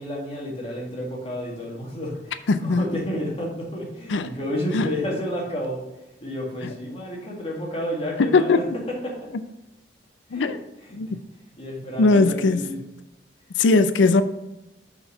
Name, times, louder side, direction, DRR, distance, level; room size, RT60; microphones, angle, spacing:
voice 1, 0.0-5.8 6.2-8.6 9.0-9.3 10.3-10.5 10.9-11.0 11.6-12.8, equal, 30° left, 1.9 m, -30 dB
voice 2, 2.5-2.9 4.1-4.3 4.7-4.9 8.3-8.6 10.3-10.6 11.0-11.2 12.0-12.6 13.6-14.2, left 3 dB, 80° left, 0.5 m, -19 dB
5.5 x 4.6 x 5.6 m
head